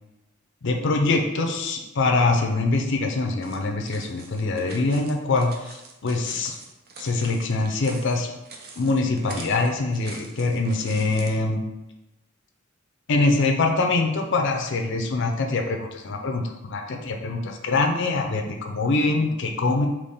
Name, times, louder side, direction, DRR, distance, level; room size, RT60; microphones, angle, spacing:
voice 1, 0.6-6.6 7.0-8.3 8.8-11.6 13.1-19.9, left 3 dB, 65° left, 2 dB, 0.5 m, -24 dB
sound 1, 3.4-11.4, right 3 dB, 50° right, 0.6 m, -44 dB
4.1 x 3.0 x 3.4 m, 0.97 s
head